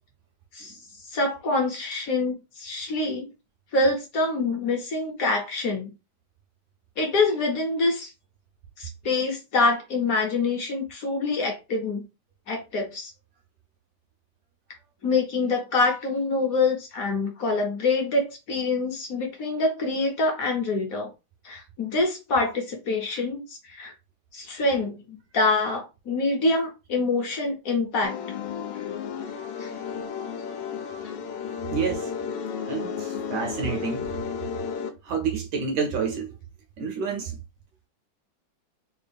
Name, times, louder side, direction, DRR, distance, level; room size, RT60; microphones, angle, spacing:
voice 1, 1.1-3.3 3.7-5.9 7.0-8.1 8.8-12.0 12.5-13.1 15.0-21.1 21.4-23.9 24.3-28.2 29.6-29.7, left 3 dB, 55° left, 1.0 m, -25 dB
sound 1, 28.0-34.9, left 7 dB, 75° left, 1.3 m, -33 dB
voice 2, 31.7-32.1 32.7-34.1 35.0-36.3 36.8-37.4, right 5 dB, 70° right, 1.1 m, -28 dB
3.5 x 2.3 x 3.4 m
omnidirectional pair, 2.4 m